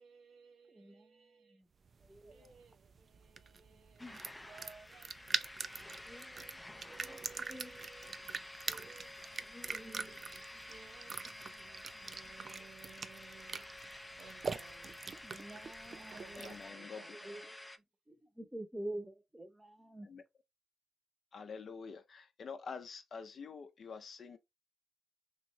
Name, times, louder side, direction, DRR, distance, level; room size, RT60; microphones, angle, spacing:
voice 1, 0.0-1.6 2.1-4.1 4.4-8.1 8.6-10.2 10.6-13.7 14.2-15.1 15.9-17.5, right 5 dB, 75° right, 0.7 m, -59 dB
voice 2, 0.7-1.7 2.0-2.5 3.7-4.2 6.1-6.6 6.9-7.2 7.5-7.7 9.5-10.2 10.5-10.7 11.9-12.0 15.2-16.7 17.2-17.5 18.1-20.1, right 1 dB, 10° right, 0.8 m, -48 dB
sound 1, 1.8-16.7, right 5 dB, 50° right, 0.3 m, -44 dB
sound 2, 4.0-17.8, left 1 dB, 15° left, 0.4 m, -51 dB
voice 3, 16.4-17.2 20.0-20.2 21.3-24.4, left 5 dB, 55° left, 0.6 m, -47 dB
3.0 x 2.7 x 3.1 m
cardioid pair, 70°, 0 cm